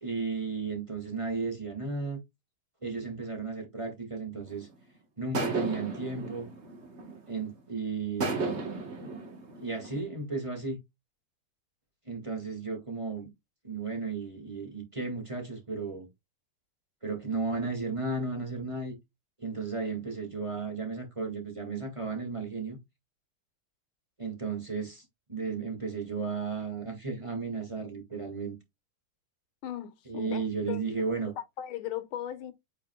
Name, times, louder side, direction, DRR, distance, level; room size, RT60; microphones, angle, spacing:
voice 1, 0.0-2.2 2.8-4.7 5.2-6.5 7.3-8.7 9.6-10.8 12.1-13.3 13.6-16.1 17.0-18.9 19.4-22.8 24.2-28.5 30.1-31.3, right 4 dB, 15° right, 1.7 m, -34 dB
sound 1, 4.5-4.7 5.3-7.5 8.2-10.0, right 3 dB, 35° right, 1.3 m, -34 dB
voice 2, 29.6-30.8 31.4-32.5, left 11 dB, 75° left, 1.8 m, -37 dB
8.4 x 5.0 x 2.3 m
omnidirectional pair, 2.4 m